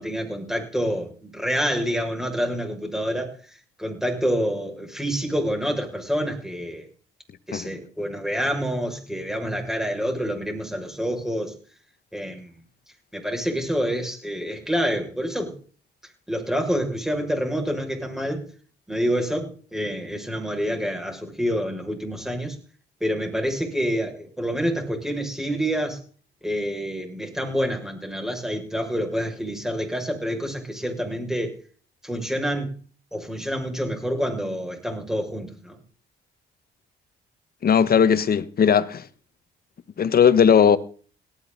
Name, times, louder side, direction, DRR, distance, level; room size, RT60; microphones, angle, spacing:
voice 1, 0.0-6.8 7.5-11.5 12.1-12.5 13.1-15.5 16.3-18.5 18.9-22.6 23.0-26.0 26.4-31.6 32.0-32.7 33.1-35.8, equal, ahead, 6.5 m, -27 dB
voice 2, 37.6-39.1 40.0-40.8, left 7 dB, 50° left, 1.4 m, -17 dB
18.0 x 14.0 x 4.1 m
cardioid pair, 90°, 20 cm